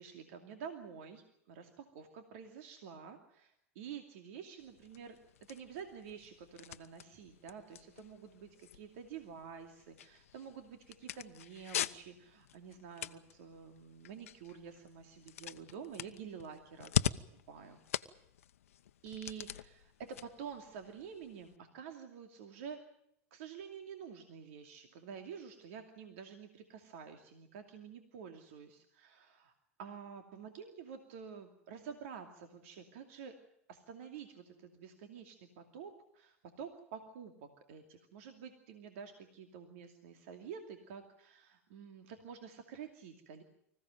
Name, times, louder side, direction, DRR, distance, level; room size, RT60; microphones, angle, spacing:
voice 1, 0.0-5.2 5.5-17.1 17.5-17.8 19.0-22.8 23.3-29.5 29.8-33.4 33.7-43.4, right 7 dB, 70° right, 6 dB, 2.6 m, -49 dB
sound 1, 4.6-21.6, left 11 dB, 80° left, 0.9 m, -43 dB
25.0 x 16.0 x 9.1 m, 0.74 s
hypercardioid pair, 95°, 7 cm